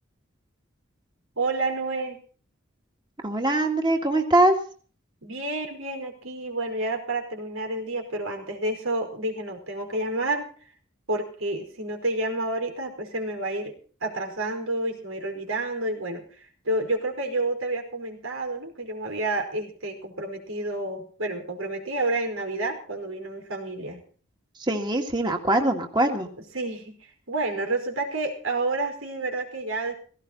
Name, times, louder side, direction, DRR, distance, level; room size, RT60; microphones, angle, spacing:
voice 1, 1.4-2.2 5.2-10.5 11.1-13.8 14.0-16.2 16.6-24.0 26.5-26.9 27.3-29.9, right 2 dB, 90° right, 3 dB, 5.0 m, -29 dB
voice 2, 3.2-4.5 24.6-26.3, right 1 dB, 20° right, 3 dB, 2.0 m, -22 dB
18.0 x 16.5 x 4.1 m, 0.42 s
head